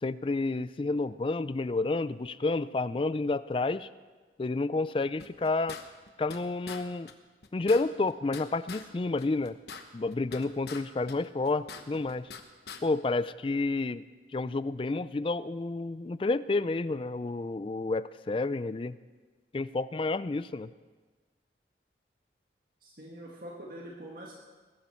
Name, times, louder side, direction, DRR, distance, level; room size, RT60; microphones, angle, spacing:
voice 1, 0.0-3.9 4.4-5.8 6.2-7.1 7.5-9.6 9.9-12.3 12.8-14.0 14.3-19.0 19.5-20.7, left 3 dB, 30° left, 16 dB, 0.4 m, -30 dB
sound 1, 5.2-6.4 6.7-6.8 7.1-7.2 7.4-8.9 9.2-10.8 11.1-12.4 12.7-12.8, left 5 dB, 65° left, 1.1 m, -44 dB
voice 2, 22.8-24.3, right 1 dB, 50° right, -3 dB, 1.6 m, -44 dB
20.5 x 12.0 x 4.5 m, 1.4 s
head